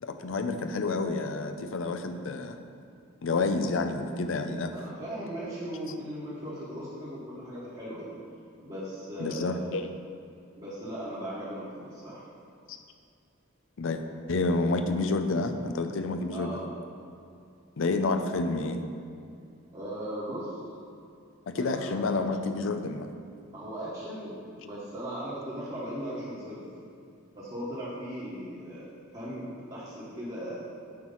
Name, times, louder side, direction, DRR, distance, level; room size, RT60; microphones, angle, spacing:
voice 1, 0.0-2.6 3.2-4.8 9.2-10.0 12.7-12.8 13.8-14.0 14.3-16.6 17.8-18.8 21.5-23.1, left 3 dB, 70° left, 7 dB, 0.5 m, -29 dB
voice 2, 4.7-8.1 8.6-9.8 10.6-12.2 16.3-16.7 19.7-20.6 21.5-22.0 23.5-26.6 27.3-28.9 29.1-30.5, equal, 30° right, -11 dB, 1.4 m, -38 dB
9.1 x 3.1 x 5.6 m, 2.4 s
head